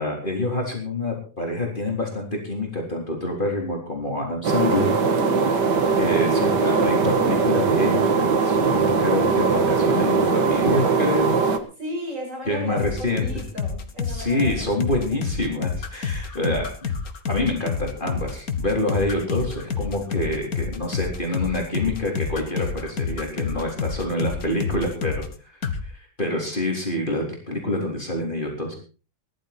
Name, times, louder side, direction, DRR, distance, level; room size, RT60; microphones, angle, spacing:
voice 1, 0.0-4.9 6.0-11.4 12.5-13.3 14.1-16.7 17.3-25.2 25.8-28.7, left 1 dB, 30° left, 0 dB, 4.0 m, -26 dB
sound 1, 4.4-11.6, right 5 dB, 85° right, 2.2 m, -20 dB
voice 2, 5.1-5.6 11.8-15.0, equal, 50° right, -1 dB, 8.4 m, -35 dB
sound 2, 12.8-25.3 25.6-25.8, left 6 dB, 60° left, 2.0 m, -28 dB
19.0 x 12.0 x 4.4 m, 0.36 s
omnidirectional pair, 1.8 m